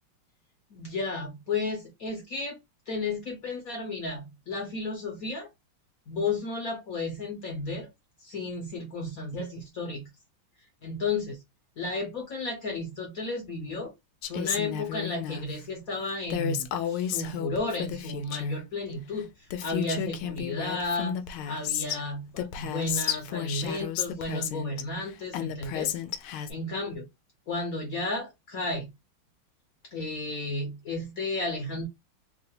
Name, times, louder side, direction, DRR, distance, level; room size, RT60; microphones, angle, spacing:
voice 1, 0.7-2.6 2.9-5.5 6.1-7.9 8.2-10.1 10.8-11.4 11.8-13.9 14.3-19.3 19.6-21.1 21.5-26.0 26.5-27.1 27.5-28.9 29.9-31.9, left 2 dB, 55° left, 1.1 m, -33 dB
Female speech woman speaking, 14.2-15.5 16.3-18.6 19.2-19.3 19.5-22.0 22.4-24.8 25.3-26.5, left 10 dB, 90° left, 1.4 m, -32 dB
3.7 x 2.6 x 2.8 m
omnidirectional pair, 2.2 m